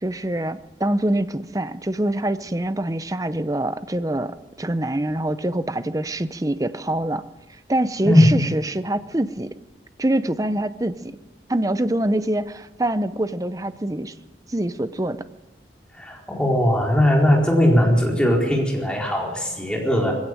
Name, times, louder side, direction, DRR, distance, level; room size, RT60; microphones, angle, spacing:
voice 1, 0.0-7.2 7.7-9.5 10.0-11.2 11.5-14.1 14.5-15.2, right 1 dB, 20° right, 12 dB, 0.7 m, -25 dB
voice 2, 15.9-20.1, equal, 5° left, -2 dB, 4.4 m, -19 dB
21.0 x 16.0 x 7.7 m, 1.1 s
head